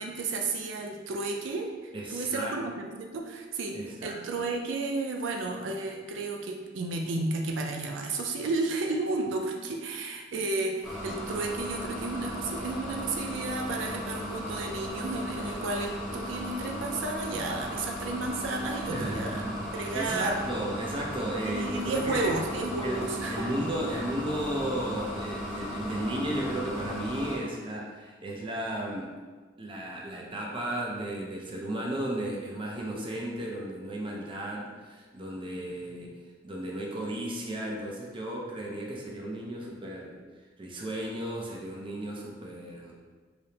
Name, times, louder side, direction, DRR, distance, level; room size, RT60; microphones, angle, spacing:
voice 1, 0.0-3.8 4.0-19.4 19.7-20.4 21.4-23.5 24.0-24.1, right 3 dB, 85° right, 2 dB, 0.4 m, -32 dB
voice 2, 1.9-2.6 3.7-4.5 18.9-22.3 22.8-29.1 29.6-36.2 36.4-40.2 40.6-43.0, right 1 dB, 25° right, -2 dB, 0.5 m, -34 dB
sound 1, 10.8-27.4, left 1 dB, ahead, 1.0 m, -36 dB
4.9 x 2.0 x 2.8 m, 1.4 s
head